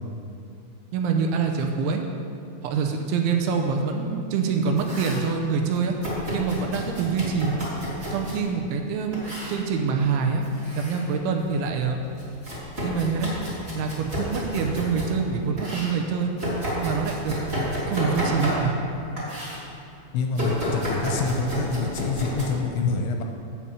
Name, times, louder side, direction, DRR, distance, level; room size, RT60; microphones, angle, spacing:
voice 1, 0.9-2.0 2.6-6.0 6.3-7.5 8.1-9.2 9.5-10.4 10.8-12.0 12.8-13.3 13.7-16.3 16.8-18.7, right 5 dB, 80° right, 3 dB, 3.0 m, -25 dB
Domestic sounds home sounds, 4.6-5.3 6.0-8.4 9.1-9.6 10.4-11.0 11.4-15.2 15.6-18.9 19.2-19.6 20.3-22.5, equal, 15° right, 2.3 m, -31 dB
voice 2, 20.1-23.2, left 4 dB, 85° left, 3 dB, 2.8 m, -26 dB
8.9 x 8.4 x 7.0 m, 2.5 s
omnidirectional pair, 5.7 m